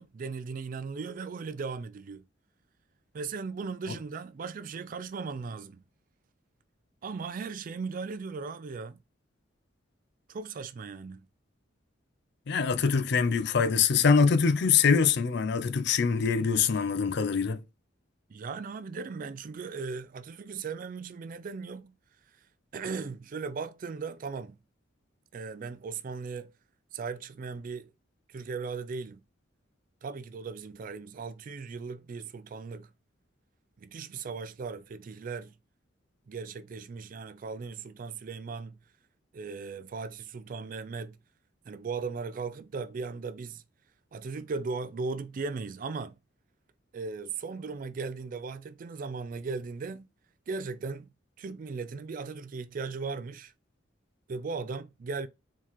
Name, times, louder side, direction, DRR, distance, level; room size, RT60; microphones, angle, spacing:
voice 1, 0.0-2.2 3.1-5.8 7.0-9.0 10.3-11.3 18.3-21.9 22.7-24.6 25.3-26.5 26.9-27.9 28.3-29.2 30.0-32.9 33.8-35.5 36.3-38.8 39.3-41.2 41.7-43.6 44.1-46.2 46.9-50.1 50.5-51.1 51.4-53.5 54.3-55.3, right 4 dB, 45° right, 0.3 m, -37 dB
voice 2, 12.5-17.6, left 5 dB, 60° left, 0.5 m, -24 dB
4.5 x 3.6 x 3.0 m
head